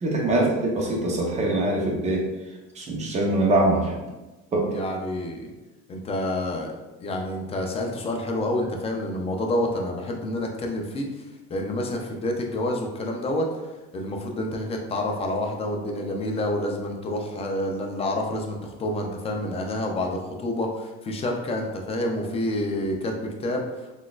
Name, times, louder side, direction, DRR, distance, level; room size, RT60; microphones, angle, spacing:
voice 1, 0.0-2.3 2.7-4.0 4.5-4.7, right 1 dB, 25° right, -2 dB, 0.7 m, -23 dB
voice 2, 4.7-5.5 5.9-6.7 7.0-11.1 11.5-13.5 13.9-23.7, left 1 dB, 20° left, 1 dB, 0.4 m, -28 dB
3.9 x 2.4 x 2.3 m, 1.1 s
cardioid pair, 140°, 29 cm